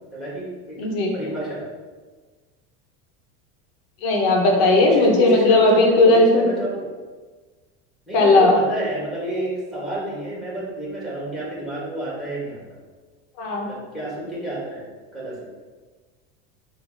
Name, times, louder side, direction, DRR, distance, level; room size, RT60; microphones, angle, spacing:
voice 1, 0.1-0.8 1.1-1.6 4.8-6.8 8.1-12.6 13.6-14.9 15.1-15.3, right 1 dB, ahead, -6 dB, 2.0 m, -29 dB
voice 2, 0.8-1.1 4.0-6.4 8.1-8.5 13.4-13.7, left 2 dB, 75° left, 1 dB, 1.6 m, -16 dB
6.7 x 3.2 x 5.5 m, 1.4 s
cardioid pair, 165°, 30 cm